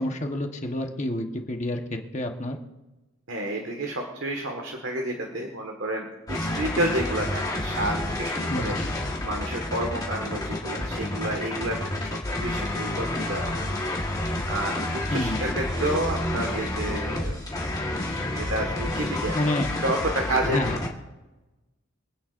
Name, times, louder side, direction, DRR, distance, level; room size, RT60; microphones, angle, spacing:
voice 1, 0.0-2.6 8.5-8.9 15.1-15.6 19.3-19.7 20.5-20.8, left 1 dB, 30° left, 3 dB, 1.2 m, -29 dB
voice 2, 3.3-13.7 14.5-17.4 18.3-19.4 19.8-20.8, right 1 dB, 60° right, 2 dB, 1.7 m, -30 dB
sound 1, 6.3-20.9, left 1 dB, 15° left, 1.5 m, -29 dB
25.5 x 9.5 x 2.6 m, 1.1 s
head